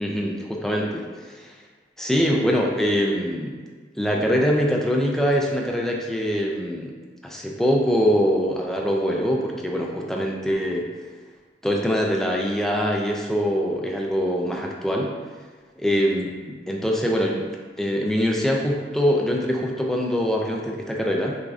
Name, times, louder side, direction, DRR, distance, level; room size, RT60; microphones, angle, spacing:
voice 1, 0.0-1.5 2.0-3.5 4.0-6.9 7.2-10.9 11.6-15.1 15.8-17.4 17.8-21.4, equal, 5° left, -1 dB, 0.4 m, -23 dB
6.3 x 2.6 x 2.3 m, 1.5 s
head